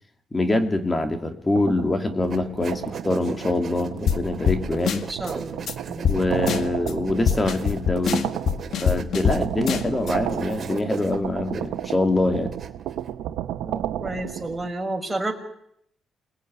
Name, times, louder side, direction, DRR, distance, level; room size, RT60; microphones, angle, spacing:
voice 1, 0.3-5.1 6.1-8.3 8.8-12.5, left 2 dB, 20° left, 7 dB, 2.8 m, -24 dB
sound 1, 1.5-14.7, right 11 dB, 90° right, 1.5 m, -33 dB
sound 2, 2.3-13.1, right 6 dB, 45° right, 3.3 m, -38 dB
sound 3, 4.1-4.2 4.5-4.6 4.9-5.3 5.7-5.8 6.0-6.2 6.5-6.9 7.3-9.4 9.7-10.1, left 7 dB, 65° left, 1.9 m, -23 dB
voice 2, 5.0-6.1 13.6-15.3, right 2 dB, 15° right, 3 dB, 5.8 m, -31 dB
28.0 x 20.5 x 9.9 m, 0.72 s
cardioid pair, 90°, 0 cm